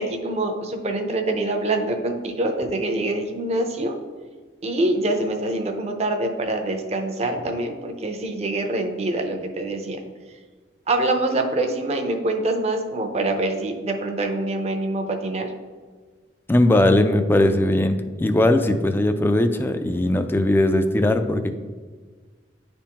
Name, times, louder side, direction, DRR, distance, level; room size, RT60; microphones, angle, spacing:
voice 1, 0.0-4.0 4.6-10.0 10.9-15.5, right 2 dB, 35° right, 4 dB, 0.6 m, -25 dB
voice 2, 16.5-21.5, left 1 dB, 10° left, 7 dB, 0.3 m, -19 dB
10.0 x 3.5 x 2.9 m, 1.5 s
head